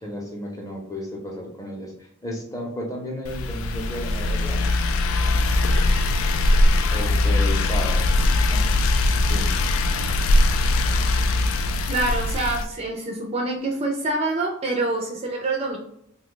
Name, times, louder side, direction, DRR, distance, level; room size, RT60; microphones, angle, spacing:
voice 1, 0.0-4.6 6.9-8.1 8.5-8.7 9.3-9.5, equal, 15° left, 0 dB, 0.6 m, -33 dB
sound 1, 3.2-12.6, left 2 dB, 85° left, 0.3 m, -21 dB
voice 2, 11.9-15.8, right 2 dB, 30° right, 1 dB, 0.4 m, -26 dB
3.0 x 2.2 x 3.7 m, 0.74 s
head